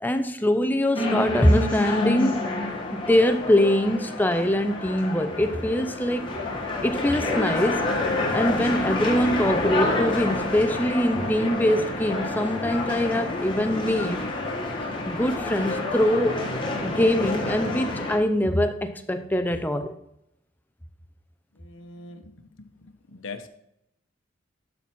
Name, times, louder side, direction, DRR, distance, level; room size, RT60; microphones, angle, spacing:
voice 1, 0.0-2.4 2.9-6.3 6.8-7.9 8.3-14.2 15.1-16.4 16.8-20.0, left 1 dB, 10° left, 0.5 m, -23 dB
sound 1, 0.9-18.2, left 2 dB, 25° left, 1.4 m, -28 dB
voice 2, 21.5-23.5, left 3 dB, 80° left, 0.9 m, -42 dB
11.5 x 4.2 x 4.5 m
head